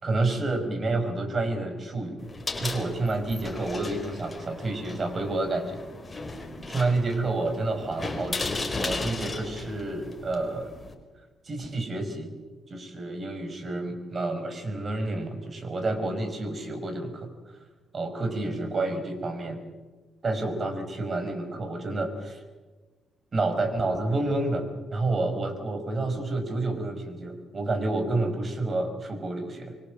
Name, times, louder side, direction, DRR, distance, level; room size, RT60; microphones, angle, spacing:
voice 1, 0.0-2.2 2.6-5.9 6.6-8.5 8.8-10.7 11.5-12.4 12.7-17.3 17.9-19.6 20.2-22.4 23.3-29.8, right 2 dB, 35° right, 7 dB, 5.2 m, -29 dB
sound 1, 2.2-10.9, left 3 dB, 20° left, 4.4 m, -36 dB
25.0 x 24.0 x 7.5 m, 1.3 s
cardioid pair, 90°, 0 cm